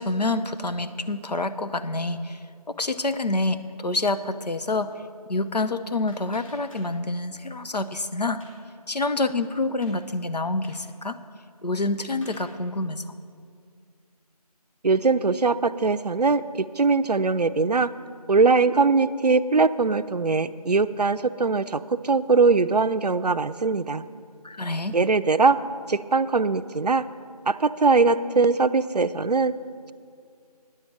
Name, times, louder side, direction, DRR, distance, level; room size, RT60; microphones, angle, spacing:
voice 1, 0.0-2.4 2.7-4.9 5.3-8.4 8.9-11.2 11.6-13.2 24.4-24.9, left 2 dB, 90° left, 10 dB, 0.7 m, -27 dB
sound 1, 5.3-7.3 7.6-8.7 9.1-9.2 9.5-10.0 10.5-10.9 11.7-12.6, left 1 dB, 55° left, 3.0 m, -53 dB
voice 2, 14.8-17.9 18.3-24.0 24.9-25.6 25.9-27.0 27.5-29.5, right 4 dB, 80° right, 13 dB, 0.5 m, -21 dB
10.0 x 6.5 x 7.5 m, 2.2 s
figure-of-eight pair, 175°, 20 cm